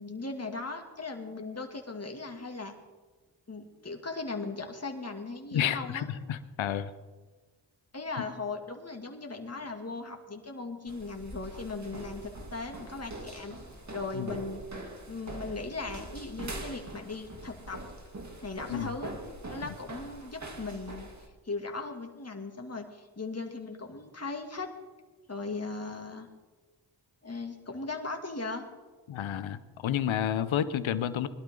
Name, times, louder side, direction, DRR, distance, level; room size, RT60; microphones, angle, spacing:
voice 1, 0.0-2.7 3.5-6.0 7.9-13.6 13.9-14.6 15.1-17.8 18.4-19.1 19.5-21.1 21.4-24.7 25.3-26.3 27.2-28.7, left 3 dB, 35° left, 3 dB, 2.5 m, -38 dB
voice 2, 5.5-6.9 14.1-14.3 18.7-18.9 29.1-31.3, left 10 dB, 85° left, 13 dB, 0.9 m, -30 dB
sound 1, 10.9-21.3, right 1 dB, 35° right, 2.8 m, -43 dB
21.0 x 12.0 x 3.9 m, 1.3 s
cardioid pair, 45°, 46 cm